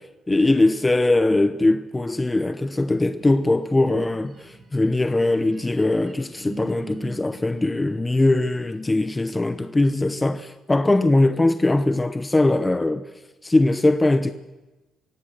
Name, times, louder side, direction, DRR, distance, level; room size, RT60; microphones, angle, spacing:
voice 1, 0.0-13.1 13.4-14.3, left 2 dB, 15° left, 0.8 m, -21 dB
sound 1, 3.2-9.2, right 4 dB, 45° right, 3.9 m, -44 dB
24.5 x 17.0 x 6.4 m
cardioid pair, 90°, 0 cm